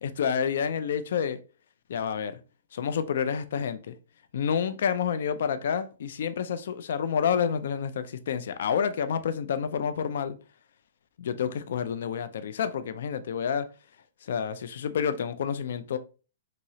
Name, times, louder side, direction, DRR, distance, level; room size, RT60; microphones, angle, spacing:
voice 1, 0.0-1.4 1.9-2.4 2.7-4.0 4.3-10.4 11.2-13.7 14.2-16.0, left 7 dB, 60° left, 0.3 m, -29 dB
3.0 x 2.7 x 2.7 m
hypercardioid pair, 160°, 0 cm